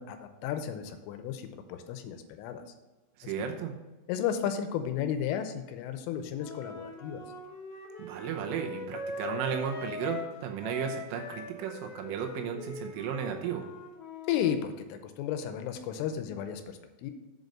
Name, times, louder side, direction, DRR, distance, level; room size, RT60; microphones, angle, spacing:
voice 1, 0.0-2.6 3.2-3.3 4.1-7.2 14.3-17.1, left 9 dB, 90° left, 8 dB, 3.2 m, -33 dB
voice 2, 3.2-3.7 8.0-13.7, right 8 dB, 85° right, 2 dB, 3.4 m, -34 dB
Wind instrument woodwind instrument, 6.4-10.3 10.6-14.6, left 4 dB, 65° left, 2.7 m, -41 dB
7.8 x 5.3 x 6.3 m, 1.1 s
omnidirectional pair, 5.8 m